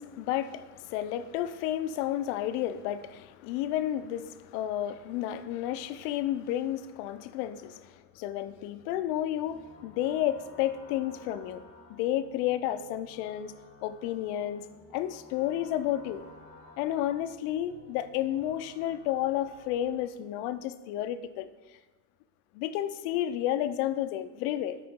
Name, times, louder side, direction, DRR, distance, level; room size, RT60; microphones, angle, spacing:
voice 1, 0.0-11.6 11.9-13.6 13.8-14.7 14.9-16.2 16.8-21.5 22.5-24.8, left 12 dB, 70° left, 12 dB, 0.6 m, -31 dB
sound 1, 9.3-20.0, left 2 dB, 15° left, 1.2 m, -54 dB
8.6 x 5.1 x 3.6 m, 1.2 s
cardioid pair, 165°, 48 cm